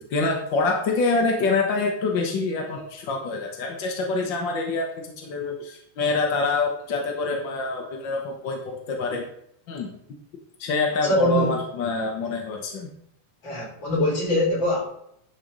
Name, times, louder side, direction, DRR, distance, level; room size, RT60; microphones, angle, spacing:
voice 1, 0.0-9.3 9.7-9.9 10.6-12.9, left 3 dB, 60° left, 1 dB, 1.2 m, -26 dB
voice 2, 11.0-11.6 13.4-14.9, left 1 dB, 35° left, -3 dB, 3.8 m, -23 dB
11.0 x 4.6 x 5.2 m, 0.72 s
omnidirectional pair, 3.8 m